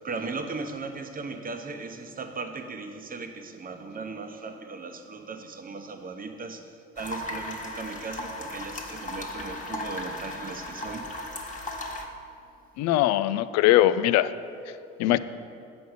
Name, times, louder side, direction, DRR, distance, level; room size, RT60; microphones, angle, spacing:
voice 1, 0.0-11.8, right 4 dB, 30° right, 6 dB, 0.9 m, -37 dB
sound 1, 7.0-12.1, left 1 dB, 25° left, 1.4 m, -36 dB
voice 2, 12.8-14.3 15.0-15.2, left 14 dB, 60° left, 14 dB, 0.4 m, -21 dB
8.1 x 5.2 x 6.5 m, 2.6 s
hypercardioid pair, 65°, 30 cm